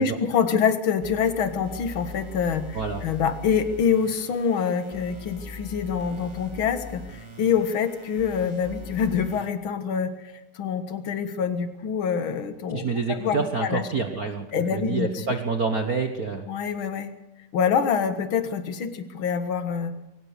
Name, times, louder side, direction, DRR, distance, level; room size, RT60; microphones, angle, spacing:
voice 1, 0.0-13.8 14.5-15.2 16.5-17.1 17.5-19.9, left 7 dB, 50° left, 9 dB, 1.9 m, -26 dB
sound 1, 1.0-9.5, left 2 dB, 10° right, 2.3 m, -41 dB
voice 2, 12.7-16.5, right 4 dB, 60° right, 5 dB, 0.9 m, -27 dB
22.5 x 18.0 x 6.6 m, 0.90 s
omnidirectional pair, 3.6 m